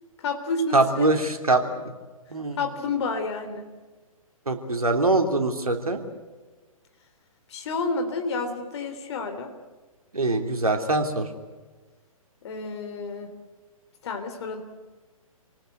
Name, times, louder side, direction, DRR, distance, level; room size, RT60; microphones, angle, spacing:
voice 1, 0.2-1.1 2.6-3.7 7.5-9.5 12.4-13.3 14.0-14.6, left 3 dB, 50° left, 6 dB, 3.2 m, -30 dB
voice 2, 0.7-1.6 2.3-2.6 4.5-6.0 10.1-11.3, right 2 dB, 80° right, 5 dB, 3.2 m, -23 dB
28.0 x 19.0 x 8.0 m, 1.3 s
figure-of-eight pair, 125°, 18 cm